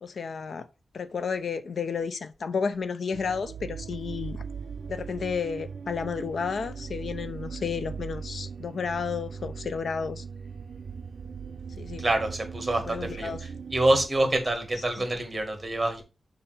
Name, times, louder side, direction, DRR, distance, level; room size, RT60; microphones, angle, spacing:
voice 1, 0.0-0.7 0.9-4.4 4.9-10.2 11.8-12.1 12.9-13.4 15.0-15.1, left 5 dB, 65° left, 0.5 m, -32 dB
sound 1, 3.1-14.1, right 6 dB, 65° right, 0.4 m, -39 dB
voice 2, 12.0-13.3 13.7-16.0, right 1 dB, 20° right, 1.4 m, -26 dB
6.8 x 2.6 x 5.5 m
wide cardioid pair, 145°, 0 cm